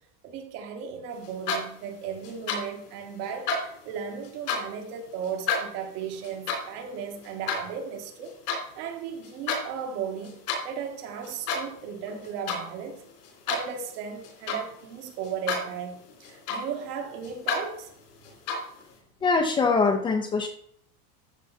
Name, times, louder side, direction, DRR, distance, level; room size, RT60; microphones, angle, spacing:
voice 1, 0.2-8.3 8.8-13.0 13.5-17.9, right 7 dB, 75° right, 2.1 m, -36 dB
sound 1, 1.2-1.9 2.2-2.8 3.2-4.8 5.2-8.6 9.1-9.6 9.9-10.7 11.2-11.8 12.1-12.7 13.0-14.8 15.2-15.8 16.0-16.9 17.2-17.6 18.2-18.8, left 4 dB, 85° left, 3.6 m, -31 dB
voice 2, 19.2-20.5, left 4 dB, 10° left, 0.3 m, -23 dB
13.0 x 4.5 x 4.2 m
supercardioid pair, 135°, 46 cm